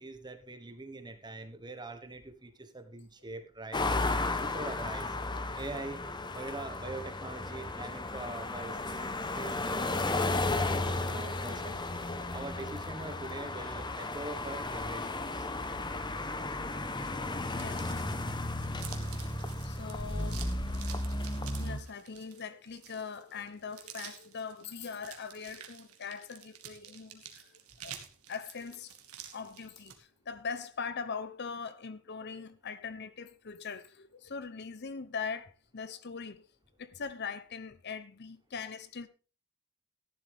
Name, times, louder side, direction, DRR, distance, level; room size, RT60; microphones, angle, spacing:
voice 1, 0.0-3.8 4.4-5.2 5.5-6.0 6.3-11.8 12.3-15.5 17.9-18.0, right 2 dB, 20° right, 1.3 m, -43 dB
sound 1, 3.7-21.8, left 2 dB, 20° left, 0.9 m, -34 dB
voice 2, 17.6-17.9 19.6-20.4 21.6-27.4 27.8-28.0 28.3-28.9 29.3-36.5 36.8-39.1, left 5 dB, 50° left, 0.7 m, -41 dB
sound 2, 17.6-30.0, right 9 dB, 80° right, 1.9 m, -50 dB
13.5 x 11.0 x 3.5 m
head